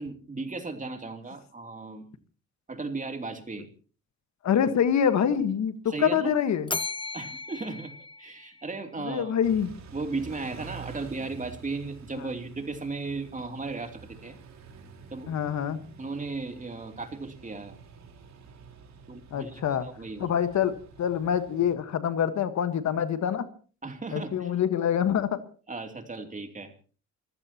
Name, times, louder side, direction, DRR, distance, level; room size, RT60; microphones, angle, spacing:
voice 1, 0.0-2.1 2.7-3.7 5.9-6.3 7.1-9.3 9.9-14.4 15.1-15.3 16.0-17.8 19.1-20.3 23.8-24.5 25.7-26.7, right 3 dB, 25° right, 6 dB, 3.0 m, -36 dB
voice 2, 4.4-6.7 9.0-9.7 12.2-12.3 15.3-15.8 19.3-19.9 20.2-23.5 24.1-25.4, left 8 dB, 65° left, 10 dB, 1.5 m, -26 dB
Bell, 6.7-9.0, left 3 dB, 15° left, 0.7 m, -36 dB
Car / Idling / Accelerating revving vroom, 9.4-21.7, right 5 dB, 65° right, 4.2 m, -48 dB
28.0 x 15.5 x 3.0 m, 0.39 s
cardioid pair, 90°, 30 cm